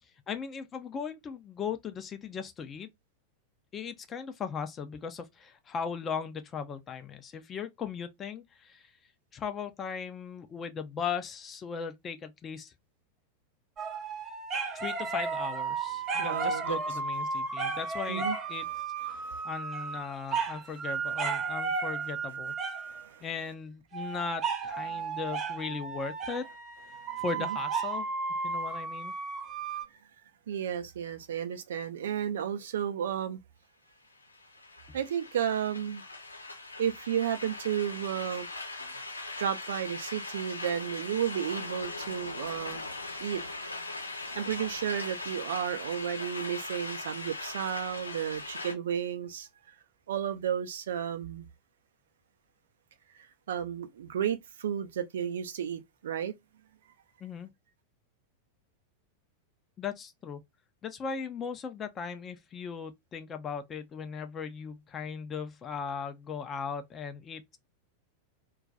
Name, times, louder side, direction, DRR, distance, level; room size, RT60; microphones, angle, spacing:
voice 1, 0.3-2.9 3.7-8.9 9.3-12.7 14.7-18.7 19.4-22.5 23.2-26.4 27.2-28.1 28.4-29.1 57.2-57.5 59.8-60.4 60.8-67.6, left 6 dB, 25° left, 0.5 m, -38 dB
sound 1, 13.8-23.0 23.9-29.9, right 4 dB, 25° right, 0.8 m, -34 dB
voice 2, 16.1-16.8 17.6-17.8 18.1-18.4 19.1-19.4 22.8-23.2 24.9-25.0 30.5-33.4 34.9-36.0 36.8-38.5 39.4-42.8 43.2-43.4 44.4-49.5 50.1-51.5 53.2-56.3, right 9 dB, 60° right, 0.5 m, -33 dB
sound 2, 34.2-48.7, left 2 dB, 80° left, 0.8 m, -40 dB
2.3 x 2.3 x 3.8 m
figure-of-eight pair, 90°, 0 cm